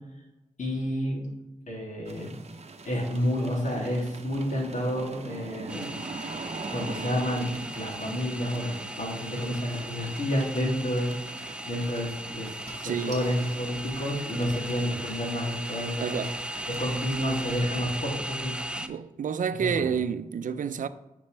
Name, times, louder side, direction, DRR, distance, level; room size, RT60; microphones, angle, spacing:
voice 1, 0.6-1.3 1.7-2.4 2.8-5.9 6.7-16.2 16.7-18.8 19.6-19.9, equal, 65° left, 2.8 m, -30 dB
sound 1, 2.1-17.6, right 4 dB, 50° right, 0.8 m, -43 dB
sound 2, 5.7-18.9, right 1 dB, 5° right, 0.6 m, -37 dB
Car / Engine starting, 11.5-11.8 12.4-12.5 12.6-17.6, right 1 dB, 25° right, 2.4 m, -51 dB
voice 2, 12.8-13.2 16.0-16.3 18.8-20.9, right 7 dB, 70° right, 0.5 m, -29 dB
10.0 x 5.2 x 3.3 m
cardioid pair, 65°, 14 cm